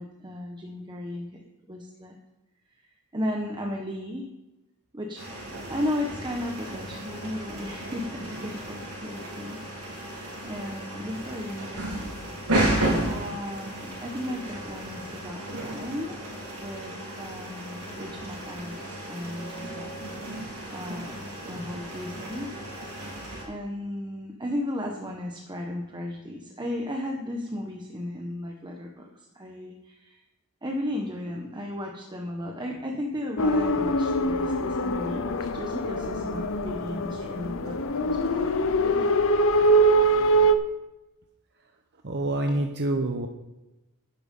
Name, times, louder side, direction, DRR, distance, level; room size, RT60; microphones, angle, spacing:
voice 1, 0.0-1.4 1.7-2.2 3.1-4.3 4.9-5.2 5.7-12.1 13.0-16.2 16.6-20.0 20.7-22.5 23.4-30.2 30.6-39.3, left 1 dB, 20° right, 1 dB, 1.2 m, -35 dB
sound 1, 5.2-23.4, right 1 dB, 85° right, 4.8 m, -33 dB
sound 2, 33.4-40.5, right 1 dB, 65° left, 0.9 m, -23 dB
voice 2, 42.0-43.3, right 1 dB, 50° right, 4 dB, 1.0 m, -27 dB
10.5 x 10.5 x 5.4 m, 1.0 s
head